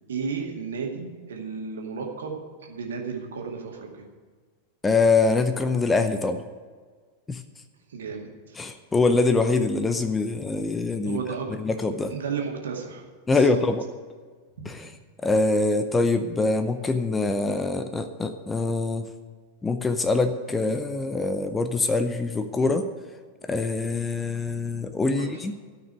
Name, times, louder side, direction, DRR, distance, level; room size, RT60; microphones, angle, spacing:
voice 1, 0.1-4.0 7.9-8.6 11.0-11.5 12.1-13.0 13.3-13.6 14.6-14.7 25.1-25.4, right 5 dB, 65° right, 1 dB, 2.1 m, -33 dB
voice 2, 4.8-6.4 7.3-7.4 8.6-11.2 11.6-12.1 13.3-13.8 14.7-14.9 15.2-19.1 19.6-22.9 23.5-25.5, left 3 dB, 15° left, 9 dB, 0.7 m, -24 dB
13.5 x 6.0 x 9.2 m, 1.5 s
figure-of-eight pair, 90°, 0 cm